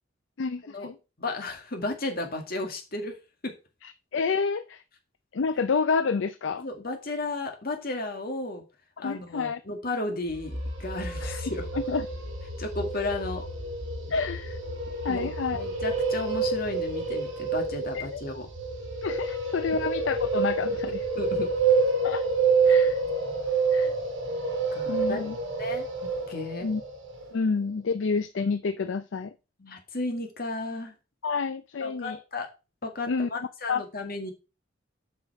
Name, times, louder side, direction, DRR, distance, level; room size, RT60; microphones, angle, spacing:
voice 1, 0.4-0.9 3.8-4.8 5.3-6.6 9.0-9.6 11.2-11.4 11.7-12.1 14.1-14.6 15.0-15.6 17.9-18.2 19.0-21.0 22.0-22.2 22.7-23.0 23.7-23.9 24.9-25.4 26.6-26.8 27.3-29.3 31.2-32.2 33.1-33.3 33.7-33.8, left 5 dB, 65° left, 0.5 m, -29 dB
voice 2, 1.2-3.2 3.4-3.5 6.6-8.6 9.0-11.7 12.6-13.5 15.1-18.5 21.2-21.5 24.7-25.2 25.6-25.9 26.3-26.7 29.6-30.9 31.8-32.5 32.8-34.3, left 2 dB, 50° left, 2.0 m, -33 dB
sound 1, 10.3-27.3, right 4 dB, 80° right, 3.5 m, -28 dB
7.4 x 5.6 x 4.8 m
head